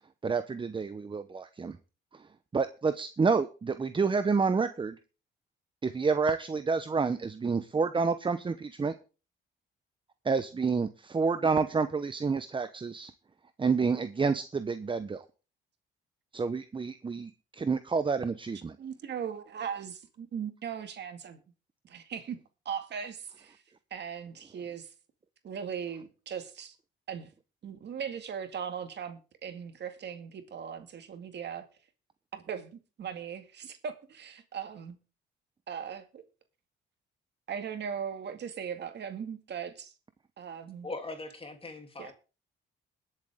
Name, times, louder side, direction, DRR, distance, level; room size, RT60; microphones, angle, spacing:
voice 1, 0.2-1.8 2.1-2.3 2.5-5.0 5.8-8.9 10.2-13.1 13.6-15.2 16.3-18.8, right 4 dB, 25° right, 0.8 m, -29 dB
voice 2, 18.8-21.4 21.8-22.4 22.7-23.6 23.9-24.9 25.4-26.8 27.1-27.3 27.6-31.6 32.3-35.0 35.7-36.2 37.5-39.9 40.4-40.9 42.0-42.1, right 7 dB, 60° right, 2.1 m, -39 dB
voice 3, 40.8-42.1, left 2 dB, 30° left, 3.1 m, -40 dB
21.0 x 7.7 x 3.6 m
cardioid pair, 90°, 20 cm